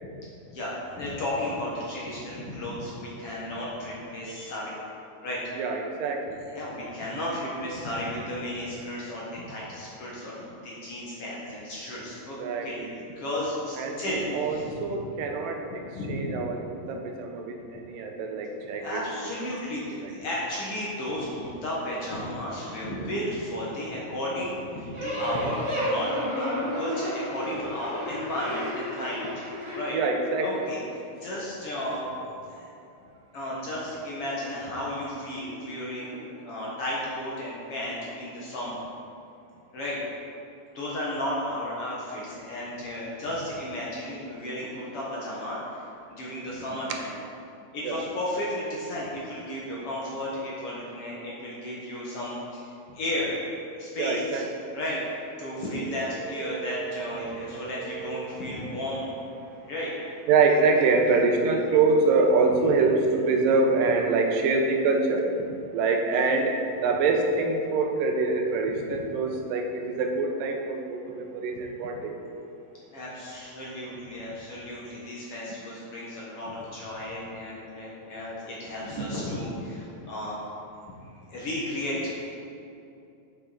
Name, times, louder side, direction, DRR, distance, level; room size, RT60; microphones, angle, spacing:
voice 1, 0.5-4.8 5.2-5.4 6.5-12.9 13.2-14.8 16.0-16.7 18.8-29.3 29.7-30.0 30.4-32.1 32.5-32.7 33.3-38.8 39.7-40.0 40.7-45.9 46.2-47.1 47.7-53.3 53.8-54.4 54.7-55.0 55.4-59.1 59.7-59.9 66.1-66.2 68.9-69.0 72.9-80.4 80.8-81.0 81.3-82.1, left 1 dB, 60° left, -6 dB, 1.6 m, -33 dB
voice 2, 5.6-6.4 12.4-12.9 13.8-19.0 20.0-20.1 22.9-23.1 29.9-30.6 47.8-48.0 54.0-54.5 55.5-55.6 56.4-58.4 60.3-65.3 65.7-72.2 78.9-79.1, right 3 dB, 85° right, 3 dB, 2.4 m, -25 dB
sound 1, 24.9-29.8, equal, 20° right, 0.9 m, -31 dB
7.9 x 7.1 x 4.0 m, 2.6 s
omnidirectional pair, 4.0 m